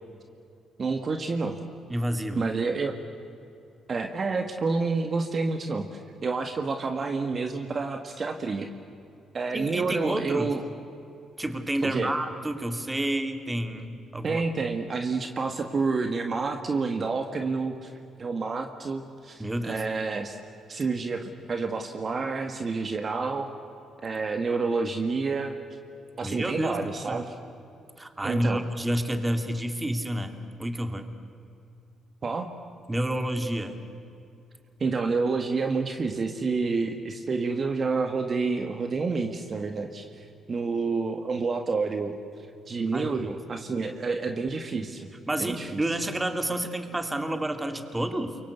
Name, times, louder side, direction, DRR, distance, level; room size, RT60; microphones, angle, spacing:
voice 1, 0.8-1.6 2.4-2.9 3.9-8.7 9.3-10.6 11.8-12.1 14.2-17.9 18.2-20.4 20.7-23.5 24.0-25.6 26.2-27.3 28.2-28.6 32.2-32.5 34.8-42.2 42.7-45.1 45.4-45.8, right 4 dB, 40° right, 5 dB, 1.9 m, -29 dB
voice 2, 1.9-2.4 9.5-10.5 11.4-14.4 19.4-19.8 26.2-26.8 27.1-27.2 28.0-31.1 32.9-33.8 42.9-43.2 45.3-48.4, right 1 dB, 15° right, 7 dB, 2.6 m, -29 dB
28.5 x 24.0 x 8.2 m, 2.7 s
cardioid pair, 90°, 0 cm